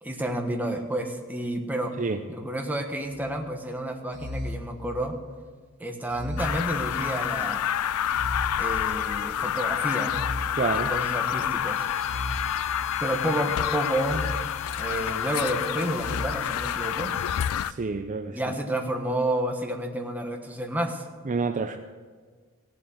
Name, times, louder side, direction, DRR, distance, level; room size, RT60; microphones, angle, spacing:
voice 1, 0.0-1.9 2.3-5.1 5.8-7.6 8.6-10.2 10.7-11.8 13.0-14.3 14.8-17.1 18.3-21.0, right 1 dB, 10° right, 3 dB, 1.3 m, -30 dB
sound 1, 3.1-3.5 4.1-5.4 6.1-7.4 8.1-9.4 10.0-11.3 12.0-13.3 14.0-15.3 15.9-16.3, left 1 dB, 55° right, 1.1 m, -37 dB
sound 2, 6.4-17.7, left 10 dB, 80° left, 0.4 m, -28 dB
voice 2, 10.6-10.9 17.6-18.5 21.3-21.8, right 4 dB, 35° right, 8 dB, 0.5 m, -28 dB
Bowed string instrument, 11.6-17.5, left 6 dB, 30° left, 0.7 m, -45 dB
17.0 x 7.5 x 7.8 m, 1.5 s
head